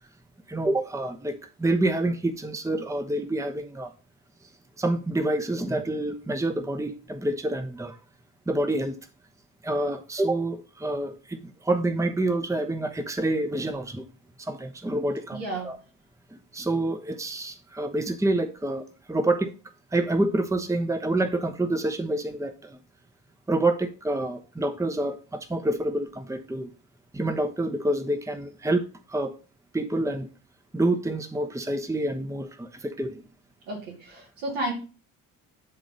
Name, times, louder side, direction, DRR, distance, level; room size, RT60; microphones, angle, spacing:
voice 1, 0.5-3.9 4.8-8.0 8.5-9.0 9.6-14.0 14.4-15.8 16.3-19.5 19.9-22.8 23.5-26.7 27.1-29.3 29.7-30.3 30.7-33.2, right 2 dB, 5° right, 7 dB, 1.0 m, -27 dB
voice 2, 15.3-15.7 33.7-34.7, right 1 dB, 75° right, -2 dB, 2.9 m, -32 dB
9.9 x 3.7 x 5.3 m, 0.35 s
hypercardioid pair, 45°, 45 cm